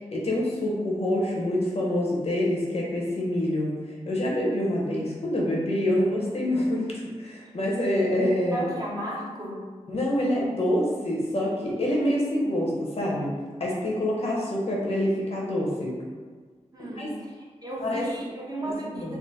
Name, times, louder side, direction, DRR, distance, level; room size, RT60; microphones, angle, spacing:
voice 1, 0.1-8.7 9.9-13.3 13.6-15.9 16.8-17.1 17.8-18.0 18.6-19.2, left 1 dB, 55° left, -3 dB, 0.8 m, -26 dB
voice 2, 8.5-9.6 16.7-17.3 17.6-19.2, right 1 dB, 30° right, -4 dB, 0.7 m, -34 dB
3.5 x 2.0 x 4.0 m, 1.5 s
wide cardioid pair, 110°, 13 cm